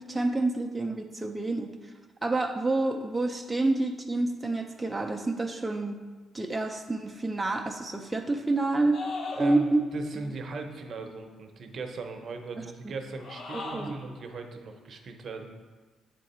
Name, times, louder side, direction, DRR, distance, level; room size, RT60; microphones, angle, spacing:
voice 1, 0.0-1.9 2.2-6.0 6.3-9.0 9.4-9.8 10.2-10.3 12.6-12.9 13.7-13.9, right 2 dB, 15° right, 2 dB, 0.4 m, -28 dB
sound 1, 8.9-10.0 13.1-14.1, left 3 dB, 60° left, 0.8 m, -38 dB
voice 2, 9.3-15.5, right 3 dB, 55° right, 4 dB, 0.7 m, -39 dB
7.5 x 3.7 x 4.2 m, 1.3 s
cardioid pair, 90°, 0 cm